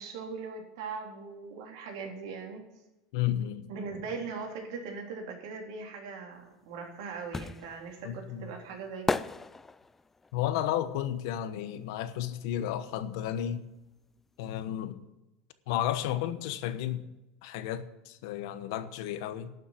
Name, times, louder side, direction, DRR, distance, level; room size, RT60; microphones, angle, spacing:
voice 1, 0.0-2.6 3.7-9.3, right 4 dB, 80° right, 3.7 m, -40 dB
voice 2, 3.1-3.7 8.0-8.5 10.3-13.7 14.4-15.0 15.7-17.1 17.4-19.5, left 11 dB, 75° left, 1.1 m, -32 dB
sound 1, 6.5-12.3 12.6-14.2 14.4-14.5, left 3 dB, 10° left, 0.3 m, -37 dB
12.0 x 7.1 x 8.3 m
supercardioid pair, 150°, 2 cm